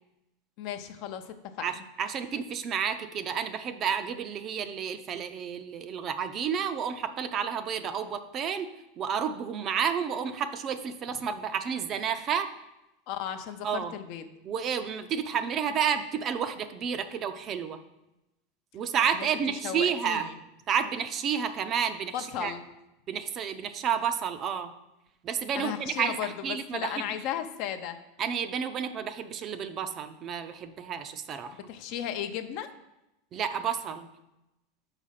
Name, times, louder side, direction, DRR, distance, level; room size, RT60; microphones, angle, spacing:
voice 1, 0.6-1.8 13.1-14.3 19.1-19.3 19.6-20.4 22.1-22.6 25.6-28.0 31.5-32.7, left 10 dB, 50° left, 8 dB, 0.6 m, -35 dB
voice 2, 1.6-8.7 9.0-12.5 13.6-13.9 14.4-17.8 18.7-20.3 20.7-22.5 23.1-24.7 25.2-27.1 28.2-31.6 33.3-34.1, right 7 dB, 30° right, 9 dB, 0.5 m, -31 dB
6.3 x 4.9 x 5.7 m, 0.92 s
supercardioid pair, 150°, 0 cm